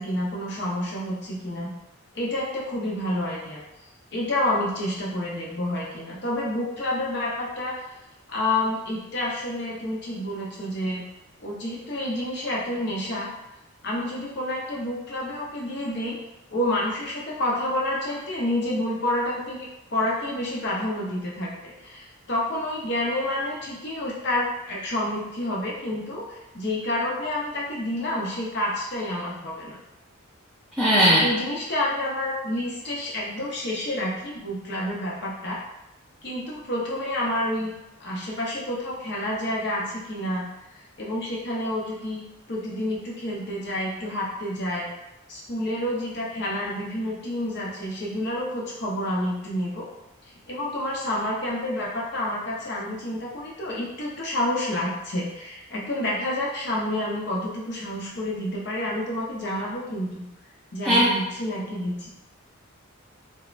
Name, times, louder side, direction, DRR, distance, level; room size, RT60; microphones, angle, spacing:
voice 1, 0.0-1.7 2.1-3.6 4.1-7.7 8.3-11.0 11.4-13.3 13.8-16.2 16.5-29.8 31.2-35.6 36.2-37.7 38.0-40.4 41.0-44.9 45.3-49.9 50.5-60.3 60.7-62.1, left 1 dB, 50° left, -4 dB, 0.6 m, -29 dB
voice 2, 30.8-31.2 60.8-61.2, equal, ahead, -11 dB, 0.3 m, -18 dB
2.4 x 2.0 x 3.0 m, 0.91 s
head